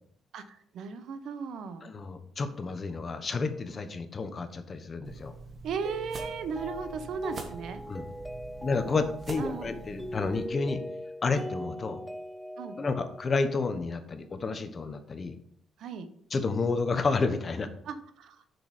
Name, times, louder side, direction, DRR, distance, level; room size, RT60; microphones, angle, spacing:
voice 1, 0.3-1.9 5.6-7.8 9.4-9.7 12.6-12.8 15.8-16.1 17.8-18.4, right 5 dB, 75° right, 10 dB, 0.9 m, -36 dB
voice 2, 1.8-5.3 7.9-8.0 8.6-10.8 11.2-12.0 12.8-15.3 16.3-17.7, left 4 dB, 40° left, 9 dB, 1.1 m, -30 dB
sound 1, 5.0-10.5, right 3 dB, 40° right, 1.6 m, -45 dB
Mallet percussion, 5.8-14.0, equal, ahead, 0.7 m, -41 dB
6.7 x 6.3 x 5.1 m, 0.65 s
cardioid pair, 90°, 0 cm